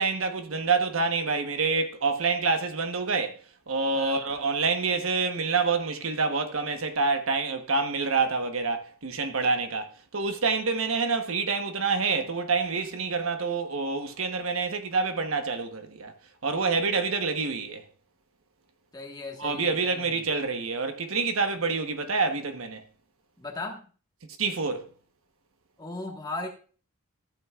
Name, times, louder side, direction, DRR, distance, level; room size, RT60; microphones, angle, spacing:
voice 1, 0.0-3.4 3.7-16.1 16.4-17.8 19.4-22.8 24.4-24.9, right 4 dB, 75° right, 1.1 m, -27 dB
voice 2, 3.9-4.3 18.9-20.3 23.4-23.9 25.8-26.5, left 2 dB, 20° left, 1.4 m, -37 dB
14.5 x 8.5 x 2.4 m
head